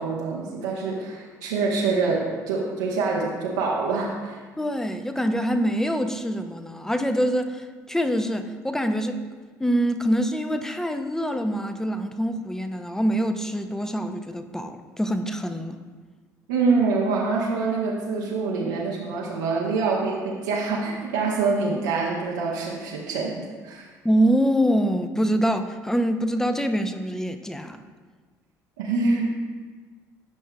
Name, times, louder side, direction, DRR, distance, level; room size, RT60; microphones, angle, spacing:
voice 1, 0.0-4.4 16.5-23.9 28.8-29.3, right 4 dB, 80° right, -4 dB, 0.8 m, -25 dB
voice 2, 4.6-9.2 9.6-15.8 24.0-27.8, equal, 5° left, 8 dB, 0.5 m, -25 dB
10.5 x 5.4 x 2.2 m, 1.5 s
hypercardioid pair, 60°, 9 cm